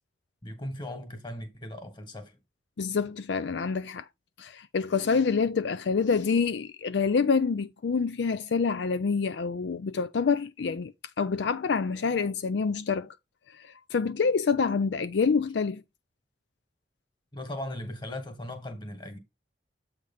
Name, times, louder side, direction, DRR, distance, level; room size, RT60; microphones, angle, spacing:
voice 1, 0.4-2.4 17.3-19.2, left 1 dB, 25° left, 1.6 m, -38 dB
voice 2, 2.8-4.0 4.4-13.1 13.6-15.8, left 5 dB, 75° left, 0.4 m, -27 dB
7.8 x 3.3 x 5.5 m
head